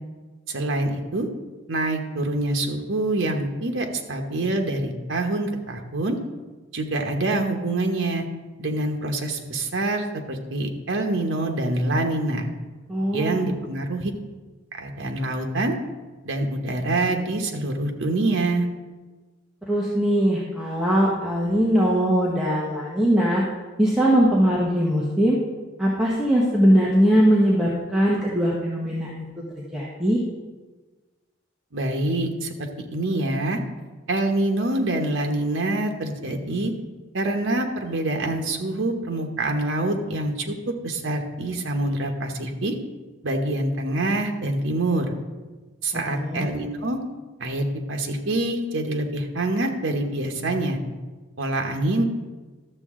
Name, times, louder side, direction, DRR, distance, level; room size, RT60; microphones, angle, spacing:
voice 1, 0.5-1.3 1.7-6.2 6.7-8.3 8.6-12.5 13.1-14.1 14.7-15.8 16.2-18.7 31.7-33.6 34.1-36.7 37.1-40.5 40.8-42.7 43.2-45.1 45.8-47.0 47.4-50.8 51.4-52.0, right 2 dB, 80° right, 3 dB, 1.0 m, -25 dB
voice 2, 12.9-13.5 19.7-23.4 23.8-25.4 25.8-29.1 29.7-30.2 45.9-46.5, equal, 5° right, -6 dB, 1.1 m, -21 dB
12.0 x 7.1 x 3.7 m, 1.3 s
head